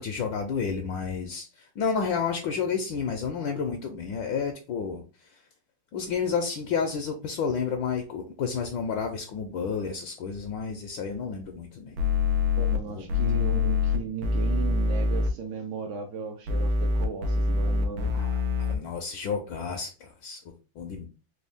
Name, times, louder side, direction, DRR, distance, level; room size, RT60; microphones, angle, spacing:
voice 1, 0.0-5.4 5.9-12.0 12.9-13.2 18.1-21.1, left 6 dB, 70° left, 4 dB, 1.2 m, -31 dB
sound 1, 12.0-12.8 13.1-15.3 16.5-18.8, left 4 dB, 90° right, 1.6 m, -25 dB
voice 2, 12.6-18.2, right 5 dB, 75° right, 2 dB, 1.0 m, -36 dB
4.4 x 2.2 x 3.3 m, 0.34 s
omnidirectional pair, 2.4 m